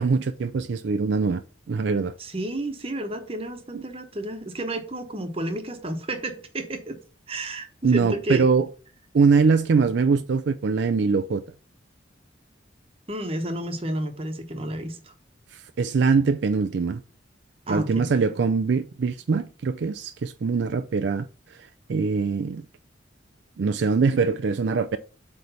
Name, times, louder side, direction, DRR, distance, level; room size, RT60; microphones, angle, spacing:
voice 1, 0.0-1.4 1.7-2.1 3.7-3.8 7.8-8.7 9.1-11.4 15.5-17.0 17.7-21.6 21.9-22.6 23.6-25.0, right 4 dB, 65° right, 0.4 m, -23 dB
voice 2, 2.2-7.0 7.3-8.5 13.1-15.1 17.7-18.1, right 1 dB, 30° right, 1.0 m, -31 dB
7.9 x 3.3 x 5.5 m
head